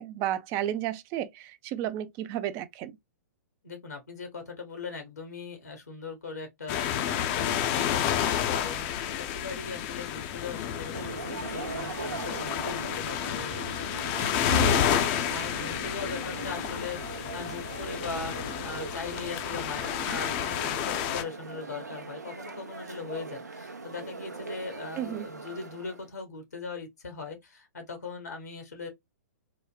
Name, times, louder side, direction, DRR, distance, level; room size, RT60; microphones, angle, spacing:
voice 1, 0.0-2.9 14.5-14.8 25.0-25.3, right 12 dB, 30° right, 0.4 m, -32 dB
voice 2, 3.6-13.5 14.4-28.9, left 4 dB, 75° left, 1.0 m, -40 dB
sound 1, 6.7-21.2, left 10 dB, 35° left, 0.5 m, -30 dB
sound 2, 10.9-26.1, right 3 dB, 80° right, 0.7 m, -40 dB
3.9 x 2.1 x 2.2 m
figure-of-eight pair, 110°, 9 cm